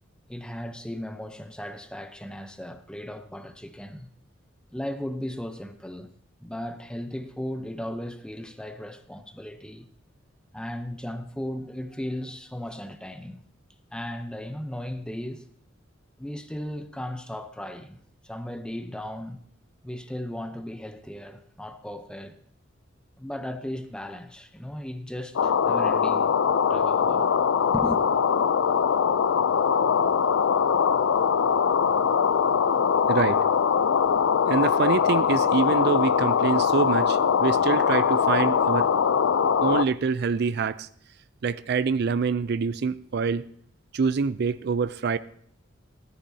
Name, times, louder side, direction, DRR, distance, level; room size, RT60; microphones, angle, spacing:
voice 1, 0.3-4.1 4.7-6.1 6.4-9.9 10.5-13.4 13.9-15.5 16.2-19.4 19.8-22.4 23.2-26.4 26.7-27.4 27.7-28.0, left 1 dB, 5° left, 0.7 m, -36 dB
sound 1, 25.4-39.8, left 7 dB, 80° left, 0.4 m, -22 dB
voice 2, 33.1-33.4 34.5-38.9 39.6-40.9 41.4-43.4 43.9-45.2, right 5 dB, 55° right, 0.4 m, -25 dB
16.0 x 13.5 x 2.8 m
head